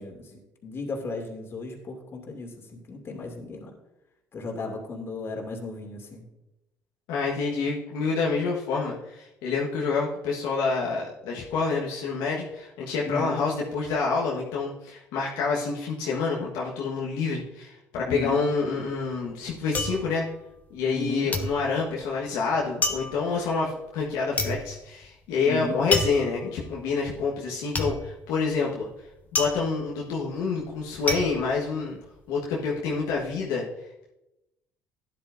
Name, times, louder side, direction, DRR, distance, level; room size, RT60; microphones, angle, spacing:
voice 1, 0.0-3.7 4.3-6.2 13.0-13.5 18.1-18.5 20.9-21.3 25.5-25.8, left 3 dB, 45° left, 1 dB, 2.6 m, -35 dB
voice 2, 7.1-20.2 20.7-28.9 29.3-32.0 32.3-33.6, left 4 dB, 80° left, -4 dB, 1.5 m, -27 dB
sound 1, 18.6-21.0 21.3-32.4 32.8-33.4, left 2 dB, 25° left, 1.3 m, -31 dB
12.0 x 10.5 x 2.7 m, 0.93 s
supercardioid pair, 75°, 6 cm